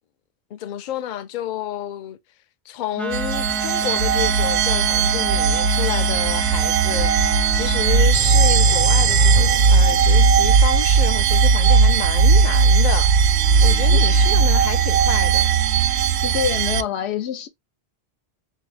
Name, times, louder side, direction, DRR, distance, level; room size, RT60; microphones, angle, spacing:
voice 1, 0.5-2.2 2.7-13.1 13.6-15.5, left 11 dB, 60° left, 0.6 m, -30 dB
Wind instrument woodwind instrument, 3.0-8.1, right 2 dB, ahead, 0.4 m, -30 dB
sound 1, 3.1-16.8, right 5 dB, 85° right, 0.8 m, -17 dB
sound 2, 8.1-11.8, right 7 dB, 55° right, 0.5 m, -26 dB
voice 2, 16.2-17.5, left 8 dB, 85° left, 0.9 m, -25 dB
3.8 x 2.8 x 3.1 m
omnidirectional pair, 1.1 m